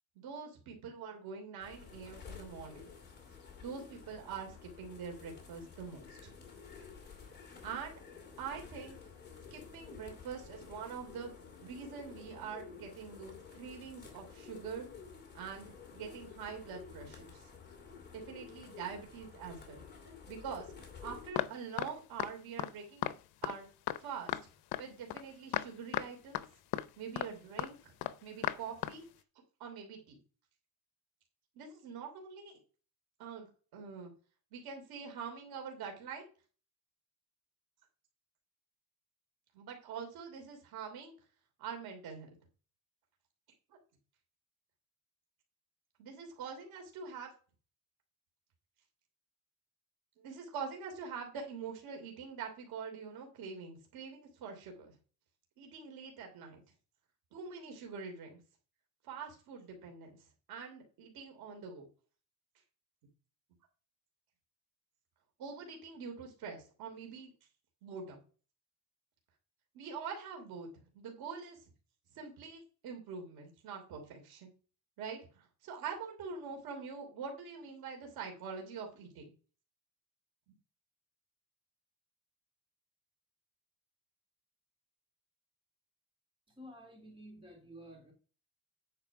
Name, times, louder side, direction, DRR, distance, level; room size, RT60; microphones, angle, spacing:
voice 1, 0.1-2.8 3.6-6.3 7.6-8.0 8.4-9.0 9.5-11.3 11.6-14.9 15.3-17.5 18.1-19.8 20.3-20.7 21.0-23.1 23.4-23.7 24.0-24.4 24.7-26.5 27.0-27.9 28.2-29.1 29.6-30.2 31.5-32.6 33.2-34.1 34.5-36.3 39.5-41.1 41.6-42.3 43.7-43.8 46.0-47.3 50.2-54.9 55.6-56.6 57.3-58.4 59.0-60.2 60.5-61.9 65.4-67.3 67.8-68.2 69.7-70.7 70.9-71.6 72.1-74.5 75.0-79.3, right 6 dB, 80° right, 2 dB, 3.0 m, -44 dB
sound 1, 1.6-21.3, left 6 dB, 30° left, 2.4 m, -52 dB
sound 2, 21.4-21.5 21.8-21.9 22.2-22.3 22.6-22.7 23.0-23.1 23.4-23.5 23.9-24.0 24.3-24.4 24.7-24.8 25.1-25.2 25.5-25.7 25.9-26.1 26.3-26.4 26.7-26.9 27.2-27.3 27.6-27.7 28.0-28.1 28.4-28.6 28.8-28.9, left 14 dB, 90° left, 0.7 m, -34 dB
voice 2, 86.6-88.1, equal, 15° right, 0 dB, 3.5 m, -52 dB
9.7 x 4.6 x 5.8 m, 0.38 s
cardioid pair, 165°, 36 cm